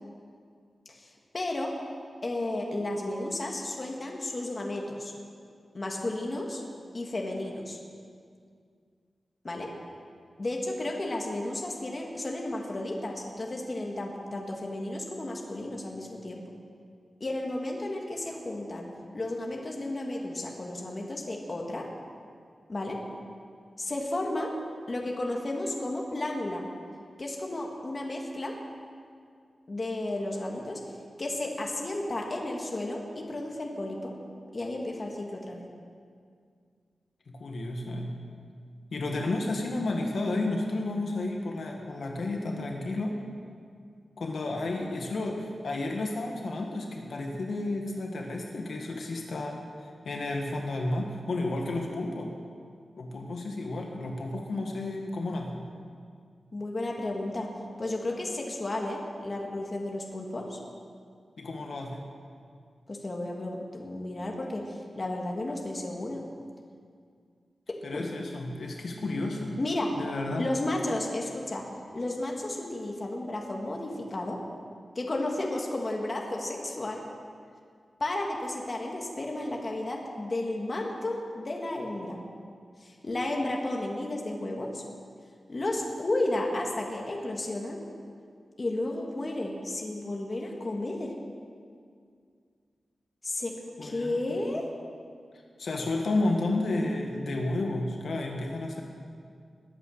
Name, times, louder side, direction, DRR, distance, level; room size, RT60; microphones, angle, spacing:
voice 1, 0.9-1.7 2.2-5.1 5.7-6.6 6.9-7.8 9.4-9.7 10.4-16.4 17.2-18.9 19.1-21.9 22.7-23.0 23.8-24.5 24.9-26.6 27.2-28.5 29.7-30.8 31.2-34.1 34.5-35.6 56.5-57.5 57.8-60.6 62.9-66.2 67.9-68.2 69.6-69.9 70.4-71.6 71.9-74.4 75.0-77.0 78.0-82.2 82.8-84.8 85.5-87.8 88.6-91.1 93.2-93.5 93.8-94.7, left 1 dB, 35° left, 0 dB, 1.7 m, -33 dB
voice 2, 37.3-38.1 38.9-43.2 44.2-52.3 53.0-55.6 61.4-62.1 67.8-69.6 70.0-70.5 93.8-94.2 95.6-98.8, left 2 dB, 65° left, 1 dB, 1.7 m, -32 dB
21.0 x 8.7 x 6.5 m, 2.2 s
wide cardioid pair, 160°, 0 cm